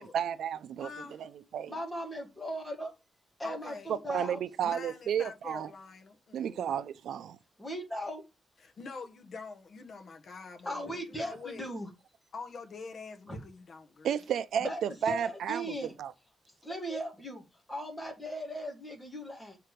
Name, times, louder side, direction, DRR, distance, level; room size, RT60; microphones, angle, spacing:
voice 1, 0.0-1.7 3.9-5.7 6.3-7.4 14.0-16.1, right 9 dB, 80° right, 0.5 m, -33 dB
voice 2, 0.8-1.2 3.4-3.9 4.6-6.7 8.6-10.7 11.1-11.7 12.3-14.1, left 4 dB, 50° left, 1.1 m, -45 dB
voice 3, 1.7-2.9 3.4-4.4 7.6-8.2 10.7-11.9 13.3-13.4 14.6-14.8 15.1-15.9 16.6-17.4 17.7-19.6, equal, 10° left, 2.2 m, -38 dB
6.6 x 4.7 x 5.1 m
wide cardioid pair, 160°, 0 cm